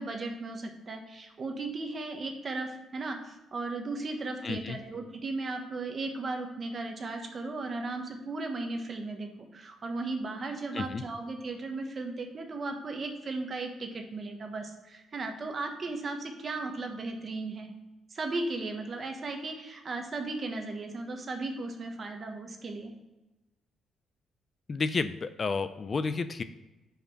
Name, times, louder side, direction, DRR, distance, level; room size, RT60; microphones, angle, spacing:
voice 1, 0.0-17.7 18.1-22.9, right 3 dB, 40° right, 4 dB, 1.2 m, -36 dB
voice 2, 4.4-4.8 10.7-11.0 24.7-26.4, left 4 dB, 40° left, 12 dB, 0.4 m, -31 dB
5.1 x 5.0 x 6.3 m, 1.1 s
cardioid pair, 90°, 0 cm